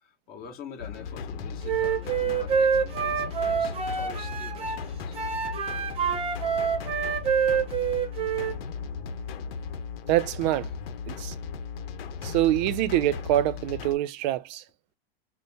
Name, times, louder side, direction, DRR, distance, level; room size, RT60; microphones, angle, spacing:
voice 1, 0.0-5.2, left 7 dB, 30° left, 1.4 m, -46 dB
sound 1, 0.8-14.0, left 5 dB, 70° left, 0.9 m, -36 dB
Wind instrument woodwind instrument, 1.6-4.8 5.1-8.6, right 7 dB, 20° right, 0.9 m, -27 dB
voice 2, 10.1-10.7 11.1-11.3 12.2-14.6, right 14 dB, 45° right, 0.6 m, -25 dB
4.0 x 2.1 x 3.5 m
supercardioid pair, 140°, 31 cm